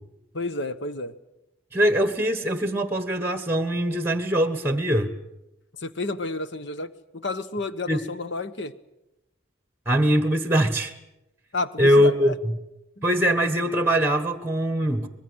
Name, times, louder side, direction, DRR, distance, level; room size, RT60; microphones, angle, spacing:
voice 1, 0.3-1.1 5.8-8.7 11.5-12.3 13.0-13.1, left 2 dB, 55° left, 12 dB, 1.2 m, -31 dB
voice 2, 1.7-5.1 7.9-8.0 9.9-10.9 11.8-12.5 13.0-15.1, equal, 10° right, 11 dB, 1.3 m, -22 dB
25.0 x 21.0 x 8.0 m, 0.91 s
head